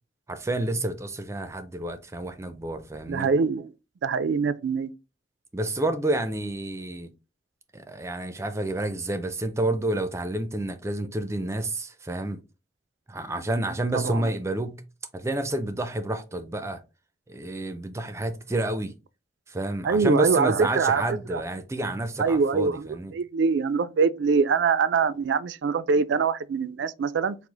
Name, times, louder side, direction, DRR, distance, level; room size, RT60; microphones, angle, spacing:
voice 1, 0.3-3.3 5.5-7.1 7.7-12.4 13.1-14.8 15.1-16.8 17.3-18.9 19.5-23.1, right 1 dB, 15° right, 0.4 m, -29 dB
voice 2, 3.1-3.7 4.0-4.9 13.9-14.3 19.8-21.0 21.3-21.4 22.2-27.4, right 5 dB, 85° right, 0.4 m, -24 dB
4.9 x 2.0 x 3.8 m
head